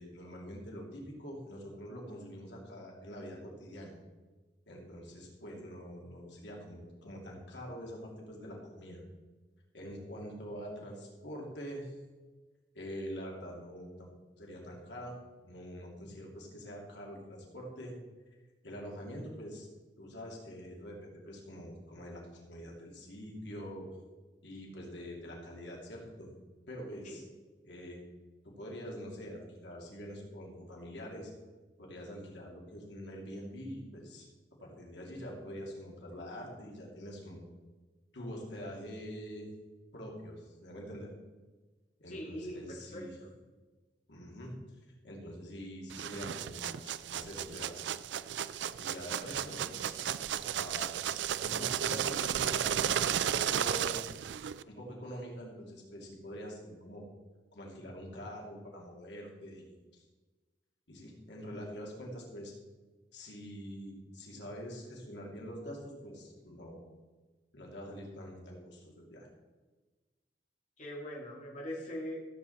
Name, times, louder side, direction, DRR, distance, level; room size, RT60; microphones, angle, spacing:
voice 1, 0.0-3.9 4.7-9.0 9.7-12.0 12.7-14.1 14.4-15.1 15.4-17.9 18.6-19.7 20.0-23.9 24.4-26.3 26.7-27.2 27.6-28.0 28.4-31.3 31.8-34.3 34.6-37.4 38.1-39.5 39.9-41.1 42.0-43.2 44.1-44.5 45.0-47.8 48.8-50.9 51.4-54.1 54.7-57.1 57.5-60.0 60.9-62.5 63.1-66.8 67.5-69.3, equal, 80° left, -2 dB, 2.8 m, -45 dB
voice 2, 42.1-43.3 70.8-72.2, equal, 45° left, -3 dB, 2.0 m, -42 dB
sound 1, 45.9-54.6, right 9 dB, 85° right, 0.4 m, -34 dB
15.0 x 7.7 x 4.2 m, 1.3 s
head